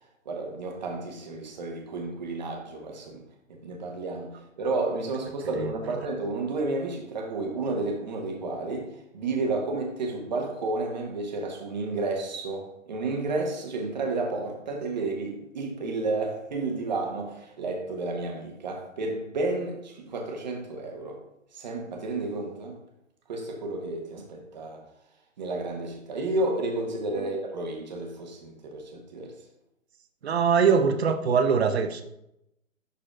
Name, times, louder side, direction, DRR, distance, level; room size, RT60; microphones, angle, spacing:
voice 1, 0.2-3.2 3.5-21.2 21.5-22.8 23.3-24.8 25.4-29.3, right 2 dB, 35° right, 1.3 m, -31 dB
voice 2, 30.2-32.0, right 6 dB, 50° right, 0.7 m, -22 dB
12.0 x 4.2 x 2.5 m
hypercardioid pair, 155°, 40 cm